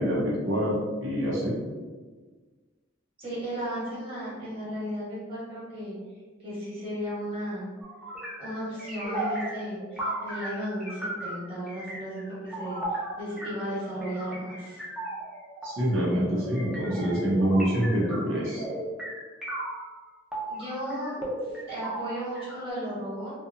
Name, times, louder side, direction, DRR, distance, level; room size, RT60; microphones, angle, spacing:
voice 1, 0.0-1.6 15.6-18.6, equal, 80° right, -6 dB, 0.7 m, -26 dB
voice 2, 3.2-6.0 6.4-7.7 8.4-14.8 20.5-23.3, equal, 30° right, -8 dB, 1.1 m, -35 dB
sound 1, 7.8-19.9 20.3-22.7, right 1 dB, 5° right, 0.5 m, -36 dB
2.7 x 2.2 x 2.5 m, 1.4 s
head